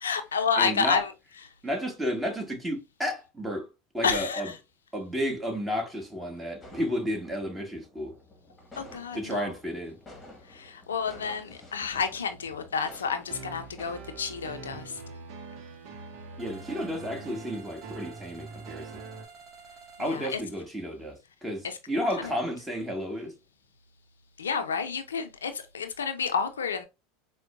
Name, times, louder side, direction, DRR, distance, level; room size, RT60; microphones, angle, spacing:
voice 1, 0.0-1.1 4.0-4.6 8.8-9.5 10.5-15.0 20.0-20.4 21.6-21.8 22.2-22.3 24.4-26.8, left 6 dB, 90° left, 0.5 m, -30 dB
voice 2, 0.6-1.0 1.6-3.7 3.9-4.5 4.9-8.1 9.1-10.0 16.4-19.0 20.0-23.3, equal, 10° right, 1.4 m, -32 dB
sound 1, 6.6-13.9, left 1 dB, 15° left, 1.4 m, -51 dB
sound 2, 13.3-19.3, right 4 dB, 55° right, 0.7 m, -43 dB
sound 3, 16.4-20.2, right 5 dB, 40° right, 1.0 m, -50 dB
4.5 x 2.1 x 2.4 m
hypercardioid pair, 90°, 0 cm